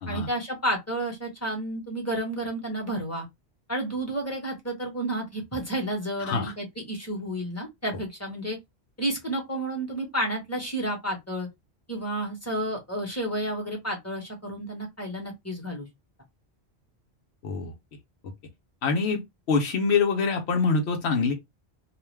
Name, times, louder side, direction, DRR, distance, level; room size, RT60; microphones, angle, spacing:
voice 1, 0.1-3.3 3.7-8.6 9.0-11.5 11.9-15.9, right 1 dB, 15° left, 1.0 m, -31 dB
voice 2, 6.2-6.5 17.4-17.7 18.8-21.3, left 4 dB, 90° left, 1.0 m, -25 dB
2.5 x 2.3 x 3.1 m
omnidirectional pair, 1.1 m